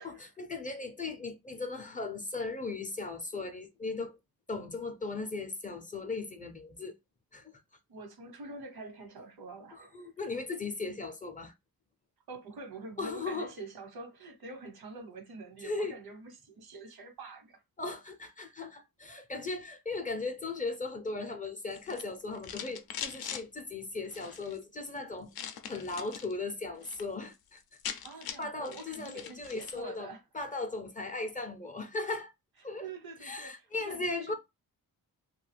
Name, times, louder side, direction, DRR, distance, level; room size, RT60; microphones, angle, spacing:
voice 1, 0.0-4.2 4.5-6.9 7.3-7.5 9.7-11.5 13.0-13.5 15.6-15.9 17.8-25.3 25.7-27.6 28.4-32.3 32.6-32.9 33.2-34.3, left 3 dB, 25° left, 0.4 m, -37 dB
voice 2, 7.9-10.1 12.3-17.6 28.0-30.2 32.8-34.3, right 3 dB, 85° right, 1.0 m, -46 dB
sound 1, 21.7-23.4 24.0-24.6 25.3-26.3 26.7-27.1 27.3-27.4 27.6-29.8, left 8 dB, 80° left, 0.5 m, -42 dB
2.6 x 2.2 x 3.3 m
wide cardioid pair, 130°, 36 cm